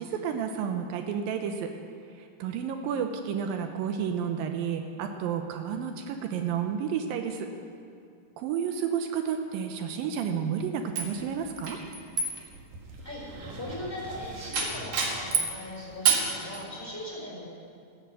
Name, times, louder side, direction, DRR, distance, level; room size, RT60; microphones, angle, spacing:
voice 1, 0.0-1.7 2.2-7.5 8.4-11.8, right 7 dB, 80° right, 6 dB, 2.5 m, -31 dB
sound 1, 11.0-15.6 16.1-16.6, right 5 dB, 60° right, 2.7 m, -30 dB
voice 2, 13.0-17.5, left 1 dB, 5° left, -4 dB, 3.8 m, -39 dB
14.0 x 10.0 x 7.6 m, 2.3 s
omnidirectional pair, 4.1 m